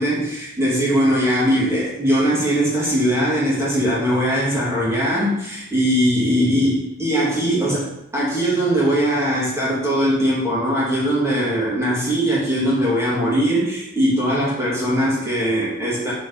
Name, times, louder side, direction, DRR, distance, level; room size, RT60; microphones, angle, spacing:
voice 1, 0.0-16.1, equal, 15° right, -7 dB, 2.8 m, -20 dB
7.6 x 4.5 x 5.0 m, 0.81 s
head